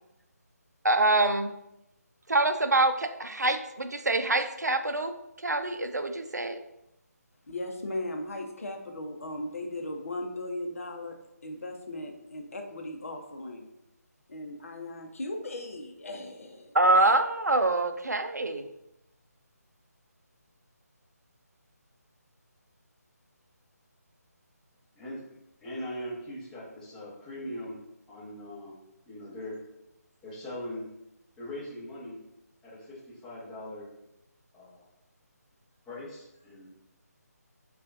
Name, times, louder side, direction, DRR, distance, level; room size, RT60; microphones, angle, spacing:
voice 1, 0.8-1.5 2.3-5.1 5.4-6.6 16.7-18.6, right 2 dB, 80° right, 7 dB, 0.5 m, -25 dB
voice 2, 7.5-11.2 11.4-13.7 14.3-16.8, left 1 dB, 55° left, 3 dB, 0.7 m, -37 dB
voice 3, 25.6-27.8 28.1-28.7 29.1-29.6 30.2-30.8 31.4-32.2 32.6-33.9 34.5-34.8 35.9-36.7, left 1 dB, 5° left, -10 dB, 1.0 m, -40 dB
6.2 x 2.4 x 2.6 m, 0.86 s
figure-of-eight pair, 155°, 9 cm